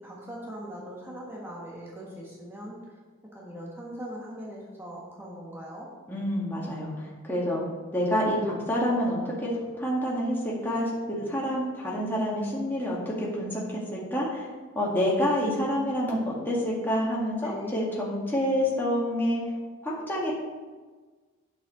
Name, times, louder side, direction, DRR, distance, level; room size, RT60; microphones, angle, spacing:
voice 1, 0.0-2.8 3.3-5.9 17.3-17.8, equal, 10° right, -4 dB, 1.4 m, -40 dB
voice 2, 6.1-7.6 7.9-9.5 9.8-10.9 11.3-14.5 14.8-19.4 19.8-20.3, equal, 10° left, -6 dB, 2.0 m, -28 dB
9.4 x 6.9 x 4.0 m, 1.4 s
head